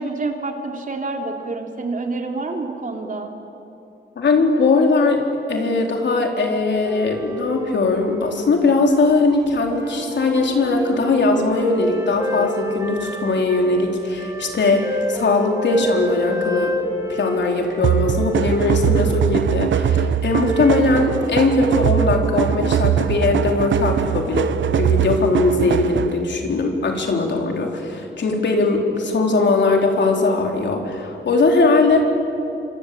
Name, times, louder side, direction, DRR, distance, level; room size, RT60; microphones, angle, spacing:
voice 1, 0.0-3.3, right 3 dB, 45° right, 3 dB, 3.1 m, -27 dB
voice 2, 4.2-5.2 5.5-16.7 17.1-24.5 24.8-32.1, left 3 dB, 70° left, 2 dB, 4.0 m, -19 dB
sound 1, 6.7-9.2 9.4-19.6 20.2-21.4, equal, 15° right, 2.3 m, -30 dB
sound 2, 17.8-26.3, right 9 dB, 85° right, 0.8 m, -21 dB
27.0 x 25.5 x 8.6 m, 2.9 s
wide cardioid pair, 120°, 19 cm